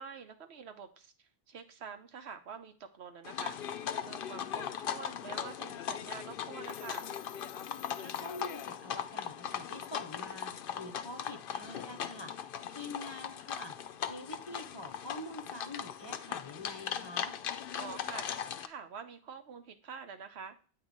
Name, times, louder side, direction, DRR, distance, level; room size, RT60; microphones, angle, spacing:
voice 1, 0.0-7.1 17.8-20.6, right 6 dB, 85° right, 7 dB, 1.1 m, -47 dB
sound 1, 3.2-18.7, left 8 dB, 65° left, 0.7 m, -39 dB
voice 2, 4.3-4.6 8.0-17.4, left 2 dB, 30° left, 6 dB, 0.6 m, -46 dB
Telephone, 6.6-9.4, left 12 dB, 85° left, 1.0 m, -53 dB
8.5 x 3.0 x 5.1 m, 0.37 s
omnidirectional pair, 1.1 m